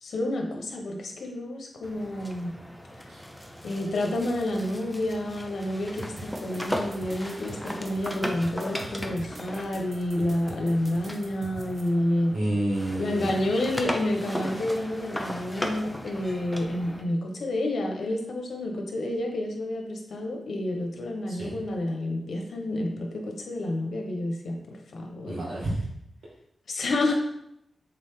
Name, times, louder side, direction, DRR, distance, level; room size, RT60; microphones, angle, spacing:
voice 1, 0.0-2.5 3.6-12.3 13.0-25.4 26.7-27.1, left 1 dB, 85° left, 2 dB, 1.3 m, -29 dB
sound 1, 1.8-12.4 12.7-17.1, equal, 5° left, 0.7 m, -37 dB
sound 2, 6.0-11.9, right 2 dB, 40° right, 0.9 m, -43 dB
voice 2, 12.3-13.3 21.3-21.6 25.3-25.8, right 1 dB, 80° right, -6 dB, 2.1 m, -29 dB
7.3 x 4.1 x 3.9 m, 0.78 s
wide cardioid pair, 125°, 0 cm